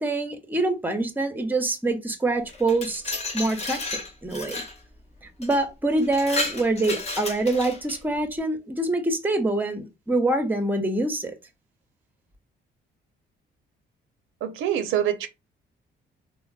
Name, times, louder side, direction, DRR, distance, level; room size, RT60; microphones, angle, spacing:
voice 1, 0.0-4.6 5.4-11.3, right 2 dB, 10° right, 0.6 m, -25 dB
Glass, 2.5-4.8 5.4-5.6 6.0-8.0, left 3 dB, 35° left, 0.6 m, -32 dB
voice 2, 14.4-15.3, right 10 dB, 85° right, 0.5 m, -25 dB
3.4 x 2.0 x 2.3 m
cardioid pair, 90°, 20 cm